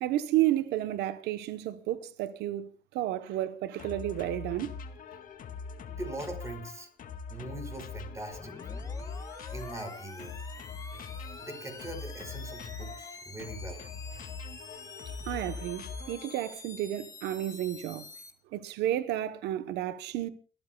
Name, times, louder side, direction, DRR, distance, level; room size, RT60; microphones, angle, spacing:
voice 1, 0.0-4.7 15.2-18.1 18.5-20.3, right 13 dB, 85° right, 1.0 m, -31 dB
sound 1, 3.8-16.6, left 5 dB, 55° left, 2.0 m, -42 dB
voice 2, 5.9-6.9 7.3-8.5 9.5-10.4 11.4-13.9, right 2 dB, 15° right, 5.0 m, -41 dB
sound 2, 8.3-18.3, left 3 dB, 20° left, 1.9 m, -48 dB
30.0 x 13.5 x 2.3 m
cardioid pair, 110°, 17 cm